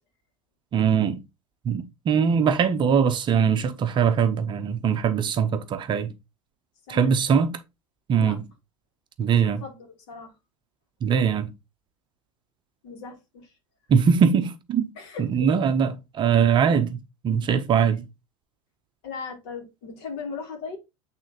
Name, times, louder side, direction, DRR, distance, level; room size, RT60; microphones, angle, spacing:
voice 1, 0.7-1.2 1.6-6.1 6.9-7.5 8.1-8.4 9.2-9.6 11.0-11.5 13.9-14.9 15.2-17.0 17.2-18.1, right 7 dB, 30° right, 0.8 m, -21 dB
voice 2, 9.3-10.3 12.8-13.5 15.0-15.5 19.0-20.8, left 5 dB, 50° left, 2.6 m, -38 dB
8.6 x 3.7 x 4.1 m
figure-of-eight pair, 80°, 17 cm